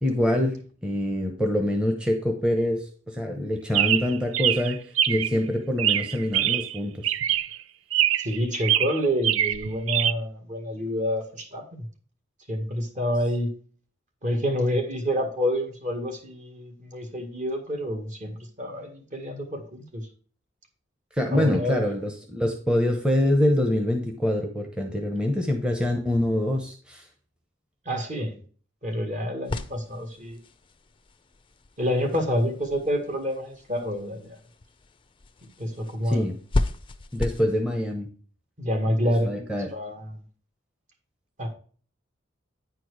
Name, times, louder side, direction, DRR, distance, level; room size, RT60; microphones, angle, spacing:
voice 1, 0.0-7.1 21.2-27.1 36.0-36.4 37.1-38.1 38.9-39.0 39.2-39.7, left 1 dB, 5° right, 2 dB, 0.9 m, -25 dB
Chirp tweet, 3.7-5.4 5.8-6.8 7.0-7.6 7.9-8.4 8.6-10.1, right 11 dB, 85° right, 0.4 m, -24 dB
voice 2, 8.2-11.9 12.5-13.5 14.2-20.0 21.3-21.9 27.9-28.3 28.8-30.4 31.8-34.4 35.6-36.3 38.6-39.4 39.7-40.2 41.4-41.5, equal, 40° right, 4 dB, 1.8 m, -28 dB
sound 1, 29.4-37.5, left 2 dB, 25° left, 0.5 m, -35 dB
9.5 x 4.6 x 4.7 m, 0.42 s
head